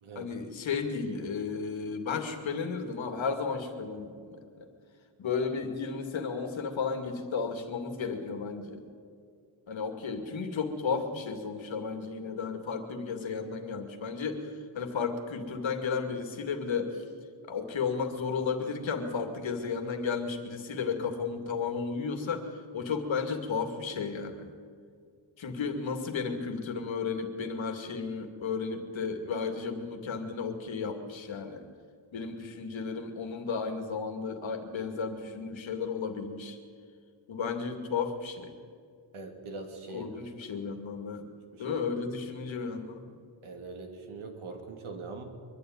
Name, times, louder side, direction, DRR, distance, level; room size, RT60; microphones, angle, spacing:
voice 1, 0.2-4.7 5.2-8.8 9.7-17.0 17.5-22.5 22.7-24.5 25.4-31.7 32.1-36.6 37.3-38.5 39.9-41.2 41.6-43.1, left 5 dB, 70° left, 5 dB, 2.4 m, -33 dB
voice 2, 39.1-40.3 41.5-41.8 43.4-45.2, right 3 dB, 85° right, 4 dB, 2.9 m, -42 dB
23.5 x 12.0 x 9.4 m, 2.2 s
wide cardioid pair, 160°, 48 cm